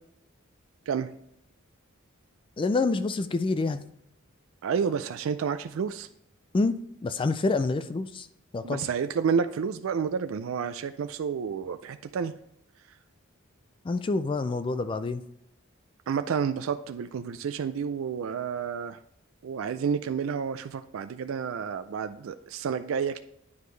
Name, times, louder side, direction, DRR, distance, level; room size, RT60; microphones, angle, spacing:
voice 1, 2.6-3.8 6.5-6.8 7.0-8.3 8.5-8.9 13.8-15.2, left 3 dB, 25° left, 12 dB, 0.3 m, -27 dB
voice 2, 4.6-6.1 8.6-12.3 16.1-19.0 19.4-23.2, right 6 dB, 70° right, 10 dB, 0.4 m, -30 dB
9.5 x 5.1 x 3.2 m, 0.77 s
head